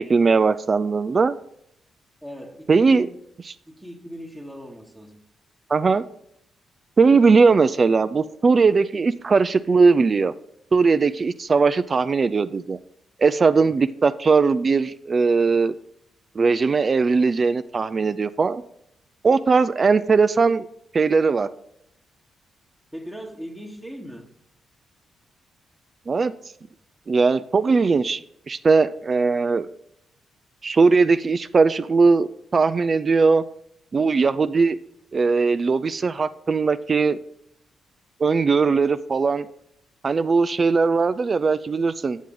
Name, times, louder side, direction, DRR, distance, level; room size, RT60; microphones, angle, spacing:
voice 1, 0.0-1.3 2.7-3.1 5.7-6.0 7.0-10.3 10.7-12.8 13.2-15.7 16.4-18.6 19.2-20.7 20.9-21.5 26.1-26.3 27.1-28.2 28.5-29.7 30.6-33.4 33.9-34.8 35.1-37.2 38.2-39.5 40.0-42.2, right 4 dB, 45° right, 0.3 m, -19 dB
voice 2, 2.2-3.1 3.7-5.2 13.6-13.7 22.9-24.3, equal, 5° right, 1.1 m, -39 dB
7.5 x 7.1 x 3.8 m
supercardioid pair, 55°, 0 cm